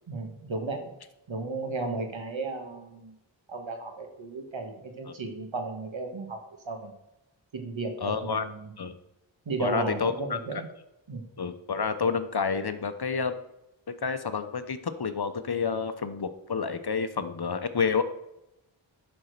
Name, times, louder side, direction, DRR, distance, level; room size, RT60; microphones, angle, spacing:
voice 1, 0.1-0.9 1.3-3.1 3.5-6.4 6.6-6.9 7.5-8.7 9.4-10.6 11.1-11.2, right 3 dB, 70° right, 4 dB, 1.7 m, -34 dB
voice 2, 8.0-8.5 8.8-8.9 9.6-10.6 11.4-13.3 13.9-18.0, left 5 dB, 55° left, 10 dB, 0.9 m, -29 dB
11.5 x 4.4 x 6.6 m, 0.87 s
wide cardioid pair, 60°, 47 cm